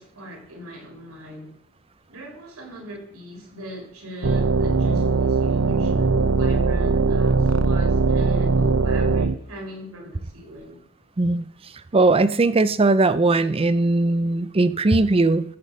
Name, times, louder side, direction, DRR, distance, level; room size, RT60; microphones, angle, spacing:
voice 1, 0.0-1.5 2.1-10.8, equal, 85° right, 3.7 m, -40 dB
sound 1, 4.2-9.4, right 4 dB, 70° right, 0.7 m, -20 dB
voice 2, 11.9-15.4, right 2 dB, 25° right, 0.5 m, -19 dB
14.0 x 5.9 x 5.4 m
head